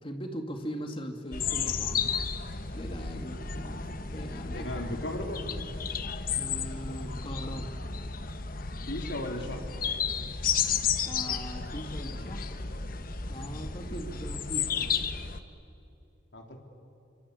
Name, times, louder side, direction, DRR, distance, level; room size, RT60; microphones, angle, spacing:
voice 1, 0.0-2.1 2.7-4.7 6.3-7.7 11.0-12.4 13.3-14.9, equal, 30° left, 5 dB, 2.3 m, -40 dB
sound 1, 1.3-15.4, left 6 dB, 50° left, 1.2 m, -33 dB
voice 2, 4.5-5.4 8.9-9.6 16.3-16.6, left 1 dB, 75° left, 3 dB, 3.4 m, -35 dB
27.0 x 24.5 x 8.5 m, 2.8 s
head